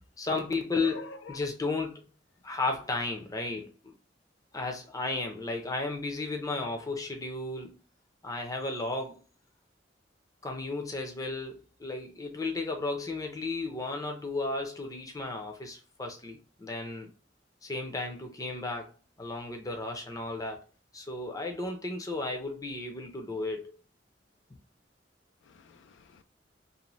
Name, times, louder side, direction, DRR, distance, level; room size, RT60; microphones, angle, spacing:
voice 1, 0.2-2.0 2.4-3.9 4.5-7.8 8.2-9.2 10.4-17.1 17.6-18.9 19.2-20.6 20.9-23.7, left 3 dB, 20° left, 0.5 m, -34 dB
voice 2, 0.8-1.4 25.4-26.2, left 4 dB, 80° left, 0.3 m, -46 dB
2.6 x 2.1 x 3.0 m
head